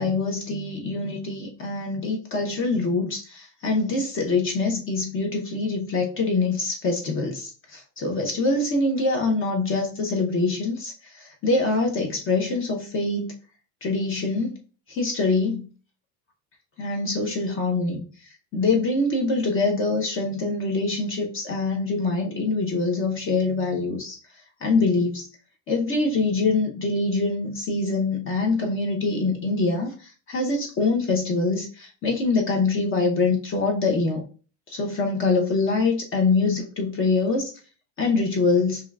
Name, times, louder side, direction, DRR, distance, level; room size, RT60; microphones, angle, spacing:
voice 1, 0.0-10.9 11.4-13.3 13.8-14.6 14.9-15.7 16.8-18.1 18.5-24.2 24.6-25.2 25.7-29.9 30.3-34.2 34.7-37.5 38.0-38.8, left 3 dB, 30° left, 2 dB, 0.8 m, -24 dB
5.8 x 2.3 x 2.3 m, 0.37 s
cardioid pair, 140°, 41 cm